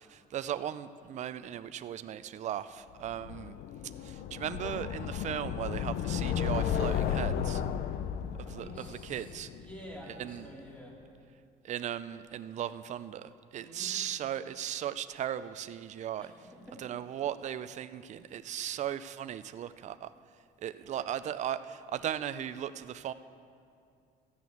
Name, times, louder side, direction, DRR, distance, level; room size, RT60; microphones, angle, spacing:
voice 1, 0.0-3.6 4.0-7.6 8.5-9.5 10.2-10.5 11.6-16.3 16.8-20.1 20.6-23.1, right 10 dB, 45° right, 12 dB, 0.4 m, -37 dB
sound 1, 3.1-10.1, left 9 dB, 65° left, 0.5 m, -34 dB
voice 2, 8.4-11.0 13.6-14.0 16.2-16.8, equal, 5° left, -3 dB, 2.9 m, -49 dB
14.0 x 6.2 x 8.4 m, 2.4 s
cardioid pair, 110°, 17 cm